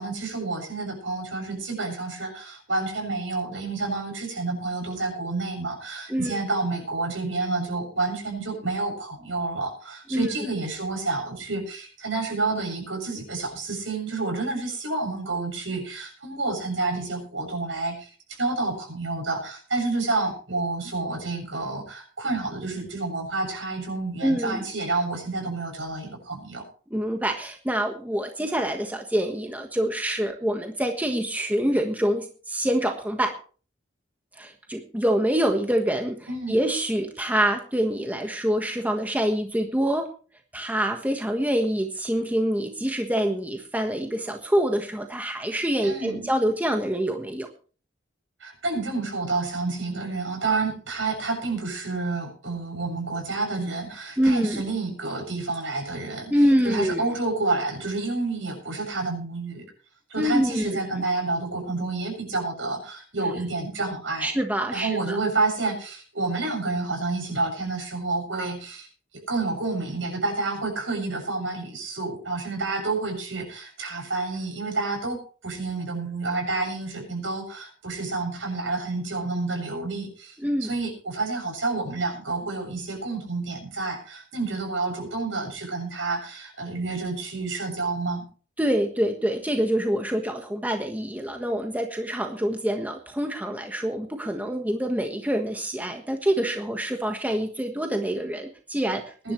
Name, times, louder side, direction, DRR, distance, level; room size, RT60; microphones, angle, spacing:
voice 1, 0.0-26.6 36.3-36.6 45.8-46.3 48.4-59.6 60.1-64.3 64.7-68.9 69.3-88.2 99.2-99.3, right 3 dB, 75° right, 1 dB, 7.3 m, -29 dB
voice 2, 24.2-24.7 26.9-33.3 34.4-40.1 40.5-47.5 54.2-54.6 56.3-57.0 60.2-60.7 64.2-65.2 80.4-80.7 88.6-99.3, equal, 10° right, 4 dB, 1.4 m, -26 dB
21.5 x 11.5 x 3.2 m, 0.39 s
head